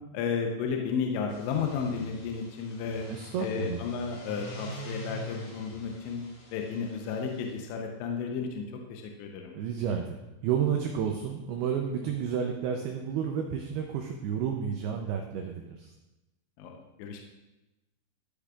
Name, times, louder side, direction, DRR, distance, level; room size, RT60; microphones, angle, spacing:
voice 1, 0.1-3.1 3.4-6.2 6.5-9.5 16.6-16.7 17.0-17.2, left 6 dB, 80° left, 2 dB, 3.0 m, -33 dB
sound 1, 1.2-7.5, equal, 50° left, 3.7 m, -45 dB
voice 2, 3.1-3.8 9.5-15.9, right 7 dB, 85° right, 2 dB, 2.3 m, -31 dB
13.5 x 8.4 x 2.4 m, 1.0 s
omnidirectional pair, 5.4 m